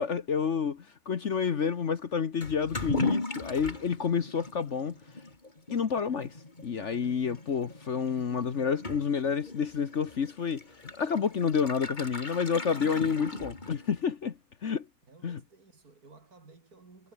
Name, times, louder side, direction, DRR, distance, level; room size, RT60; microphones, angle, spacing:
voice 1, 0.0-4.9 5.7-6.3 6.6-10.6 11.0-14.3 14.6-14.8 15.2-15.4, left 6 dB, 55° left, 1.4 m, -29 dB
Toilet flush / Liquid, 2.4-14.0, left 2 dB, 30° left, 3.0 m, -38 dB
voice 2, 15.1-17.1, right 3 dB, 80° right, 4.4 m, -55 dB
omnidirectional pair, 1.6 m